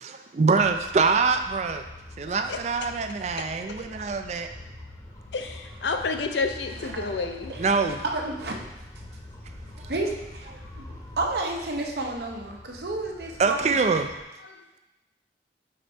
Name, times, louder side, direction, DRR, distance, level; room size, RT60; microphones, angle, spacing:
voice 1, 0.3-1.8 2.2-4.5 7.6-8.0 13.4-14.1, right 4 dB, 40° right, 7 dB, 0.3 m, -24 dB
sound 1, 0.6-14.2, left 1 dB, 20° left, 0.8 m, -45 dB
voice 2, 2.3-2.9 5.3-7.5 14.4-14.8, left 4 dB, 80° left, 6 dB, 0.6 m, -31 dB
voice 3, 6.8-7.7 8.1-8.6 9.9-10.5 11.2-13.8, right 2 dB, 65° right, 1 dB, 0.8 m, -31 dB
5.0 x 4.5 x 4.2 m, 0.98 s
head